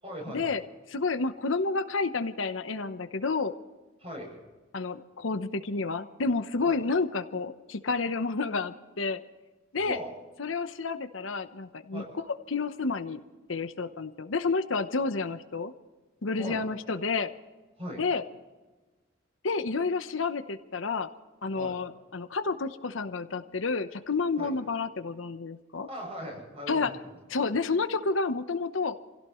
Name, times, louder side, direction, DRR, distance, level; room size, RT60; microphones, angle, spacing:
voice 1, 0.0-0.6 4.0-4.4 6.7-6.8 9.8-10.1 11.9-12.1 16.4-16.6 17.8-18.0 21.6-21.8 24.4-24.5 25.9-27.1, equal, 30° right, 0 dB, 7.6 m, -39 dB
voice 2, 0.9-3.5 4.7-9.2 9.7-10.0 10.4-12.0 12.5-13.2 13.5-15.7 16.2-17.3 18.0-18.2 19.4-21.1 21.4-25.9 26.7-26.9 27.3-28.9, left 4 dB, 80° left, 10 dB, 0.9 m, -30 dB
27.5 x 16.5 x 3.1 m, 1.2 s
head